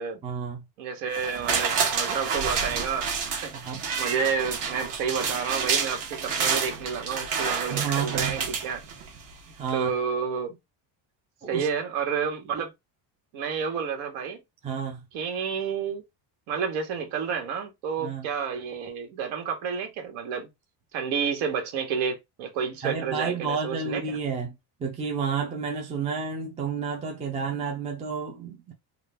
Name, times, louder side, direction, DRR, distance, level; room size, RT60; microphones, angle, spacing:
voice 1, 0.2-0.6 3.6-3.8 7.7-8.4 9.3-9.9 11.4-11.7 14.6-15.0 18.0-18.3 22.8-28.7, right 6 dB, 15° right, 0.3 m, -31 dB
voice 2, 0.8-8.8 9.7-10.6 11.5-12.7 13.3-14.4 15.1-16.0 16.5-20.5 20.9-24.2, right 6 dB, 80° right, 1.5 m, -30 dB
sound 1, 1.1-9.3 9.7-9.8, right 6 dB, 55° right, 1.3 m, -29 dB
3.6 x 2.3 x 3.5 m
cardioid pair, 175°, 48 cm